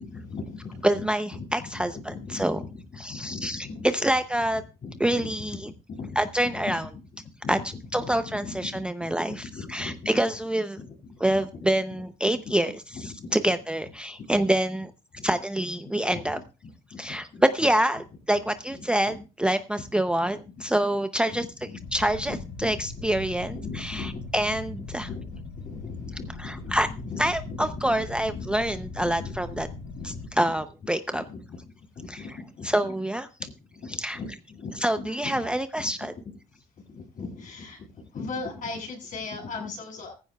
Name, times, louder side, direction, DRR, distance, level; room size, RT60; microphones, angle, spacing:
voice 1, 0.0-1.0 1.3-3.9 4.8-5.5 5.9-6.3 6.6-6.7 7.1-7.6 7.9-10.2 10.8-11.6 12.4-12.5 12.9-13.5 14.2-14.5 15.1-15.3 16.0-16.3 16.6-17.7 19.1-19.2 20.3-20.6 21.3-21.8 22.3-22.8 23.0-23.2 23.5-24.2 25.0-29.6 30.0-30.4 31.1-32.9 33.7-35.5 35.8-35.9 36.5-40.1, left 4 dB, 50° left, 0 dB, 7.3 m, -39 dB
voice 2, 0.8-2.6 3.0-4.6 5.0-5.7 6.2-6.9 7.5-7.6 7.9-10.8 11.2-14.9 15.2-16.4 17.0-21.5 21.9-25.1 26.4-26.9 27.2-29.7 30.0-31.2 32.1-32.3 32.6-33.3 34.0-34.2 34.8-36.1, right 1 dB, 5° right, 9 dB, 0.6 m, -26 dB
sound 1, 21.8-30.3, left 3 dB, 75° left, 7.6 m, -39 dB
17.0 x 15.0 x 2.3 m, 0.32 s
cardioid pair, 110°, 17 cm